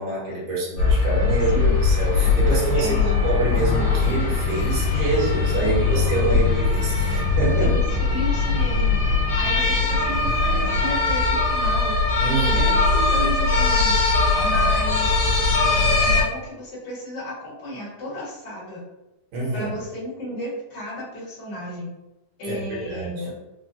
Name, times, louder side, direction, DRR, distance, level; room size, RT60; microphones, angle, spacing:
voice 1, 0.0-7.7 12.2-12.8 19.3-19.7 22.4-23.3, right 3 dB, 70° right, -5 dB, 2.3 m, -26 dB
sound 1, 0.8-16.2, left 4 dB, 65° left, 2.1 m, -20 dB
voice 2, 2.8-3.2 5.6-5.8 7.6-9.0 9.3-11.9 12.4-14.0 14.4-15.2 16.0-18.8 19.5-21.9 22.4-23.4, left 1 dB, 45° left, -7 dB, 1.3 m, -33 dB
5.1 x 2.1 x 2.6 m, 0.97 s
omnidirectional pair, 3.7 m